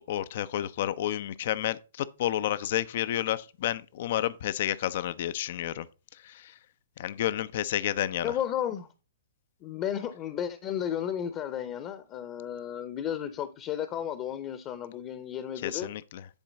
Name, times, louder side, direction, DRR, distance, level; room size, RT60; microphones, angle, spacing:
voice 1, 0.1-5.9 6.1-6.6 7.0-8.3 15.6-16.2, left 12 dB, 50° left, 0.5 m, -30 dB
voice 2, 8.2-8.9 9.6-15.9, left 10 dB, 30° left, 0.8 m, -33 dB
10.5 x 4.5 x 4.0 m
figure-of-eight pair, 115°, 0 cm